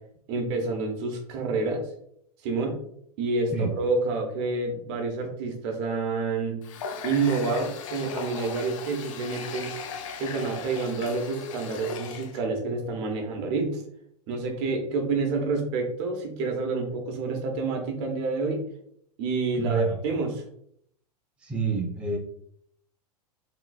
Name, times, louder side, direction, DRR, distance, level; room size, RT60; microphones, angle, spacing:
voice 1, 0.3-1.8 2.4-2.8 3.2-6.6 7.0-9.7 10.2-13.8 14.3-18.6 19.2-20.4, right 3 dB, 45° right, 2 dB, 1.1 m, -28 dB
Water tap faucet, 6.6-12.4, left 5 dB, 55° left, 0.5 m, -38 dB
voice 2, 19.5-20.0 21.4-22.2, right 5 dB, 5° right, -3 dB, 0.7 m, -28 dB
4.9 x 3.0 x 2.4 m, 0.68 s
figure-of-eight pair, 100°, 20 cm